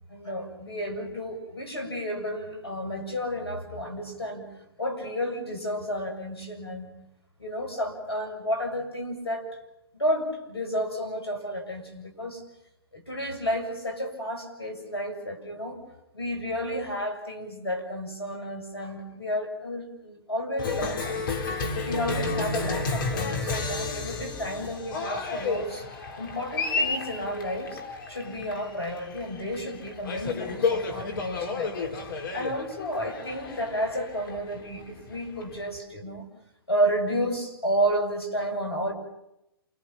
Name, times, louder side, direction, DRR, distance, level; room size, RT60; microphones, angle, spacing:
voice 1, 0.1-4.5 4.8-6.9 7.4-9.4 9.9-12.4 12.9-15.8 16.1-21.2 21.8-25.9 26.2-27.8 28.1-36.3 36.7-38.9, equal, 80° left, 5 dB, 7.4 m, -31 dB
Cheering, 20.6-35.8, left 4 dB, 60° left, 3.9 m, -31 dB
29.5 x 28.0 x 6.0 m, 0.84 s
figure-of-eight pair, 115°, 13 cm